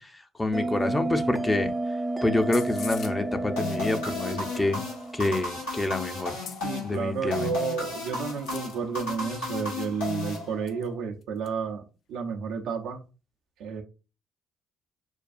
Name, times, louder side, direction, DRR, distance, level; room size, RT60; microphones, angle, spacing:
voice 1, 0.0-1.7 2.2-4.8 5.1-6.4 6.8-7.5, left 2 dB, 20° left, 7 dB, 0.7 m, -27 dB
Bell, 0.5-5.6, right 2 dB, 20° right, 0.5 m, -31 dB
sound 1, 2.4-3.2 4.5-5.2 6.2-9.0 9.4-9.5 9.7-9.8 10.7-10.9 11.2-11.5, left 7 dB, 60° left, 0.5 m, -45 dB
sound 2, 3.6-10.9, left 3 dB, 80° left, 1.9 m, -34 dB
voice 2, 6.6-11.8 12.1-13.0 13.6-13.8, right 6 dB, 70° right, 3 dB, 0.7 m, -31 dB
6.4 x 2.3 x 2.5 m, 0.32 s
hypercardioid pair, 50°, 0 cm